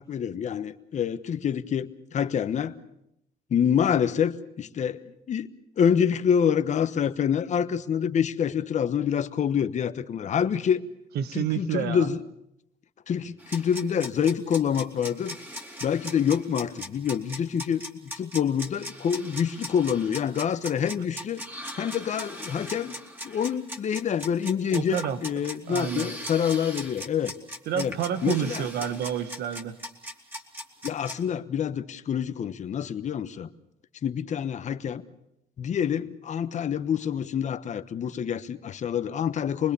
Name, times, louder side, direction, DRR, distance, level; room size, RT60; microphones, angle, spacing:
voice 1, 0.0-2.7 3.5-5.0 5.3-5.5 5.8-10.8 11.3-12.2 13.1-15.4 15.8-21.4 21.8-22.9 23.2-27.3 27.7-27.9 28.2-28.7 30.8-33.5 34.0-35.0 35.6-39.7, left 8 dB, 45° left, 11 dB, 1.2 m, -26 dB
voice 2, 11.1-12.1 24.7-25.2 25.7-26.1 27.7-29.8, right 9 dB, 70° right, 11 dB, 1.6 m, -29 dB
sound 1, 13.4-31.2, equal, 10° right, 2.9 m, -39 dB
26.5 x 20.5 x 7.0 m, 0.80 s
cardioid pair, 110°, 17 cm